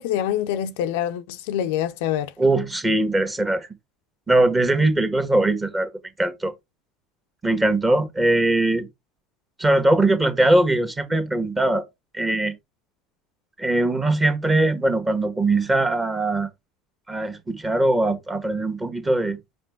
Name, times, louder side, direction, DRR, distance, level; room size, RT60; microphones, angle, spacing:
voice 1, 0.0-2.3, left 10 dB, 65° left, 0.5 m, -25 dB
voice 2, 2.4-3.7 4.3-5.9 6.2-6.5 7.4-8.9 9.6-11.8 12.1-12.5 13.6-16.5 17.1-19.4, right 2 dB, 15° right, 1.6 m, -21 dB
5.2 x 5.2 x 3.5 m
hypercardioid pair, 75°, 0 cm